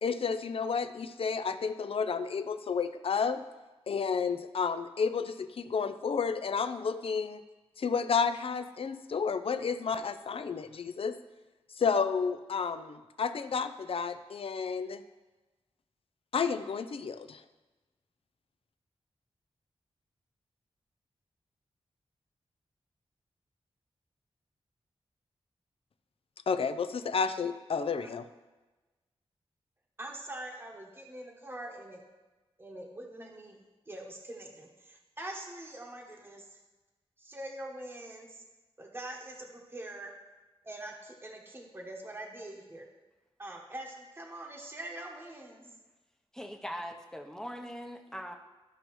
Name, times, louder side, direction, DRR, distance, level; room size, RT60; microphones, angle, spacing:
voice 1, 0.0-3.4 3.9-7.4 7.8-11.2 11.8-15.0 16.3-17.4 26.5-28.2, left 5 dB, 60° left, 11 dB, 0.4 m, -31 dB
voice 2, 30.0-32.0 32.6-36.6 37.2-38.4 38.8-40.1 40.6-42.8 43.4-45.6, right 1 dB, 20° right, 0 dB, 1.0 m, -44 dB
voice 3, 46.3-48.4, equal, 5° left, 3 dB, 0.7 m, -41 dB
13.5 x 5.3 x 3.1 m, 1.2 s
wide cardioid pair, 100°, 11 cm